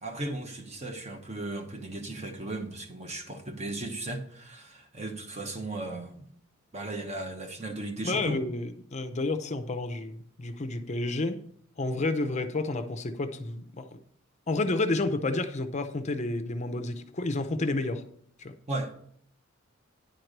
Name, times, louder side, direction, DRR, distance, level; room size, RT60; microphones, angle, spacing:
voice 1, 0.0-6.3 6.7-8.4 18.7-19.0, right 2 dB, 35° right, 1.1 m, -36 dB
voice 2, 8.0-11.4 11.8-14.0 14.5-18.0 18.4-18.5, left 2 dB, 35° left, 0.6 m, -30 dB
10.5 x 4.6 x 6.6 m
head